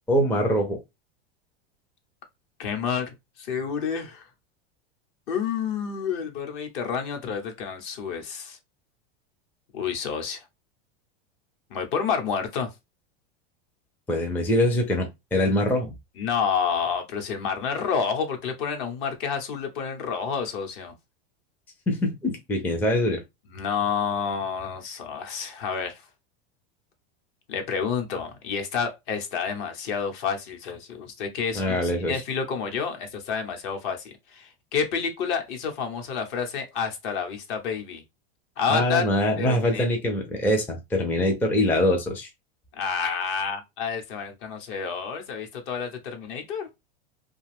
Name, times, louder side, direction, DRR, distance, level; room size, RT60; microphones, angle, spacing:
voice 1, 0.1-0.8 14.1-15.9 21.9-23.2 31.6-32.1 38.7-42.3, left 1 dB, 5° left, 0.4 m, -23 dB
voice 2, 2.6-4.3 5.3-8.6 9.7-10.5 11.7-12.7 16.2-20.9 23.5-26.0 27.5-38.0 38.6-39.0 39.4-39.9 42.7-46.7, left 6 dB, 55° left, 0.9 m, -29 dB
2.5 x 2.3 x 3.2 m
supercardioid pair, 135°, 31 cm